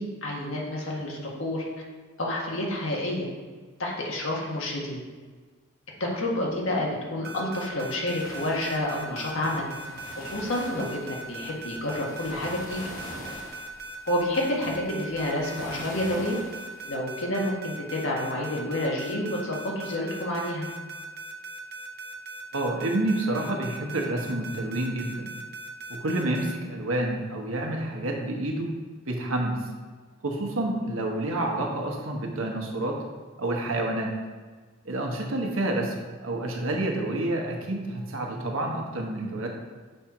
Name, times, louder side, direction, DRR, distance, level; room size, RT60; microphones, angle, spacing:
voice 1, 0.0-1.6 2.2-3.3 3.8-5.0 6.0-9.7 10.2-12.8 14.1-16.4 16.8-20.7, left 1 dB, 70° left, -2 dB, 1.5 m, -29 dB
sound 1, 7.2-26.5, right 2 dB, 50° right, 0.7 m, -40 dB
sound 2, 8.2-16.9, left 1 dB, 40° left, 1.3 m, -44 dB
voice 2, 22.5-25.3 25.9-28.7 29.1-29.6 30.2-33.0 33.4-34.1 34.8-39.5, right 1 dB, 80° right, 1 dB, 1.1 m, -29 dB
6.5 x 4.4 x 4.9 m, 1.4 s
head